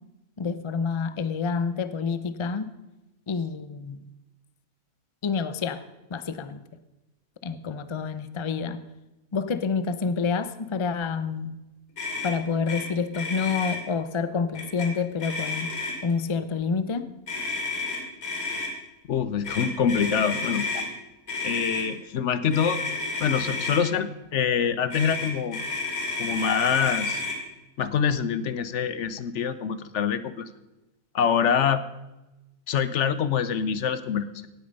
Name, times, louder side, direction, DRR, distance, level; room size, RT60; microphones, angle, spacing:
voice 1, 0.4-2.7 3.3-4.0 5.2-5.8 6.1-6.6 7.4-8.8 9.3-11.5 12.2-15.7 16.0-17.0, left 5 dB, 40° left, 12 dB, 0.4 m, -28 dB
Motor vehicle (road), 12.0-12.3 12.7-12.8 13.1-13.8 14.5-14.9 15.2-16.1 17.3-18.7 19.4-20.9 21.3-21.8 22.5-23.8 24.9-27.4, left 3 dB, 85° left, 3.0 m, -31 dB
voice 2, 19.1-20.8 21.4-22.8 23.2-25.6 26.2-27.2 27.8-30.5 31.1-31.8 32.7-34.5, left 7 dB, 65° left, 14 dB, 0.9 m, -25 dB
17.5 x 8.6 x 5.3 m, 1.0 s
omnidirectional pair, 1.5 m